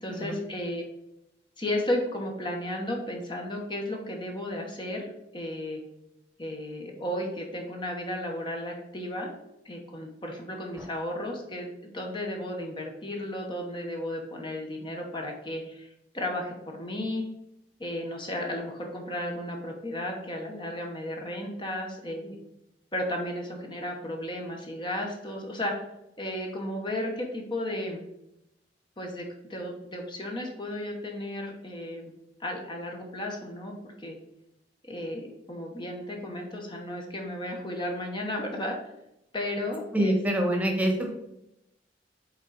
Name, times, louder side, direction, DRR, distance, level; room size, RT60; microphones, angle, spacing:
voice 1, 0.0-0.8 1.6-5.1 5.3-5.8 6.4-9.3 9.6-17.2 17.8-22.4 22.9-25.7 26.2-28.0 29.0-32.1 32.4-34.2 34.9-38.8 39.3-40.2 40.5-40.6, left 1 dB, 25° left, 1 dB, 1.0 m, -34 dB
voice 2, 39.9-41.1, right 1 dB, 10° right, 2 dB, 1.2 m, -24 dB
8.4 x 3.7 x 4.0 m, 0.86 s
head